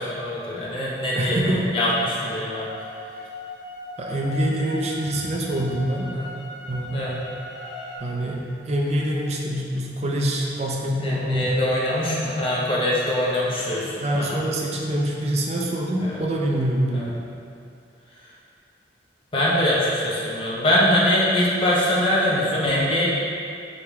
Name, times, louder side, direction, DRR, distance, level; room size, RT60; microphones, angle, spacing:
voice 1, 0.0-2.7 6.1-6.3 6.9-7.1 11.0-14.4 16.0-16.2 16.9-17.1 19.3-23.1, left 1 dB, 30° left, -6 dB, 0.7 m, -23 dB
voice 2, 1.1-1.7 4.0-6.1 6.7-7.2 8.0-11.8 13.7-17.1, right 1 dB, 35° right, -2 dB, 0.4 m, -25 dB
sound 1, 2.5-8.0, left 2 dB, 80° left, 0.6 m, -39 dB
5.0 x 3.4 x 3.1 m, 2.5 s
head